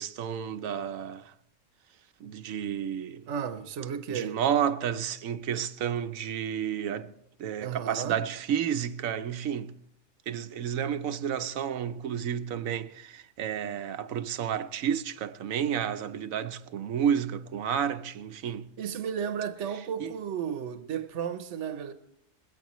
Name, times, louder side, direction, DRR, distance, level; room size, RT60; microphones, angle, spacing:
voice 1, 0.0-1.3 2.2-3.3 4.1-7.1 7.4-9.7 10.3-18.7 20.0-20.1, right 8 dB, 85° right, 1.2 m, -31 dB
voice 2, 3.3-4.4 7.6-8.2 18.8-21.9, right 8 dB, 65° right, 1.2 m, -33 dB
20.5 x 17.0 x 3.1 m
omnidirectional pair, 1.4 m